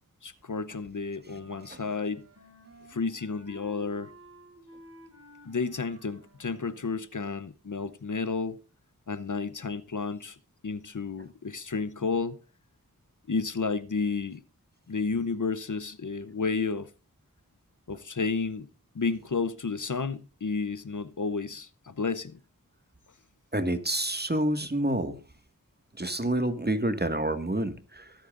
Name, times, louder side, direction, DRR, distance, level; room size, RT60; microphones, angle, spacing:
voice 1, 0.2-2.2 2.9-4.1 5.5-8.6 9.1-10.4 10.6-12.4 13.3-14.4 14.9-16.9 17.9-18.7 18.9-22.4, left 4 dB, 60° left, 0.8 m, -31 dB
Wind instrument woodwind instrument, 1.2-7.1, right 1 dB, 45° right, 5.7 m, -53 dB
voice 2, 23.5-25.1 26.0-28.1, right 1 dB, 30° right, 1.9 m, -28 dB
23.0 x 9.0 x 2.5 m
wide cardioid pair, 45°, 35 cm